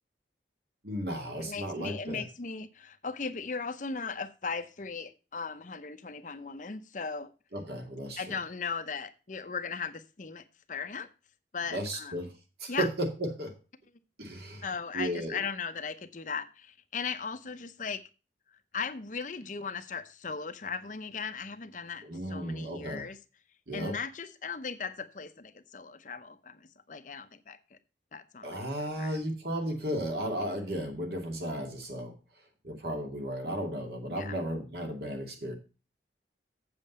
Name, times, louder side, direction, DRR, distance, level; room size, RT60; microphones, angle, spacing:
voice 1, 0.8-2.2 7.5-8.2 11.7-12.3 12.6-13.5 14.2-14.6 14.9-15.4 22.0-23.1 23.7-24.0 28.4-32.1 32.6-35.5, right 1 dB, 60° right, 2.4 m, -34 dB
voice 2, 1.4-7.3 8.2-11.1 11.5-12.2 12.7-12.9 14.6-18.0 18.7-23.2 23.7-27.8 28.1-28.6 29.0-29.2 34.2-34.4, left 5 dB, 45° left, 0.7 m, -37 dB
7.8 x 7.4 x 5.3 m
head